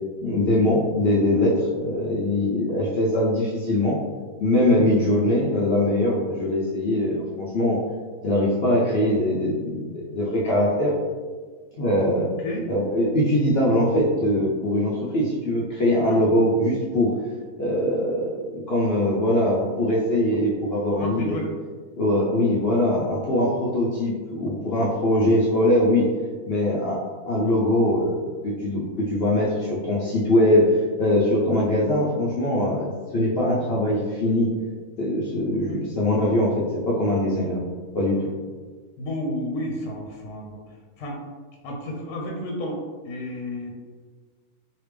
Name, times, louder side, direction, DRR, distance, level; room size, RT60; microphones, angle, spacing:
voice 1, 0.2-4.0 4.4-7.8 8.2-11.0 11.8-12.3 12.7-17.1 17.6-21.5 22.0-26.1 26.5-34.5 35.0-37.6 37.9-38.2, left 1 dB, 65° left, -5 dB, 0.6 m, -22 dB
voice 2, 12.2-12.6 16.1-16.2 20.9-21.5 29.6-29.8 35.7-35.8 38.2-38.3 39.0-40.6 41.0-41.2 41.6-43.7, left 1 dB, 80° left, 0 dB, 1.1 m, -32 dB
3.3 x 2.8 x 3.2 m, 1.5 s
omnidirectional pair, 1.6 m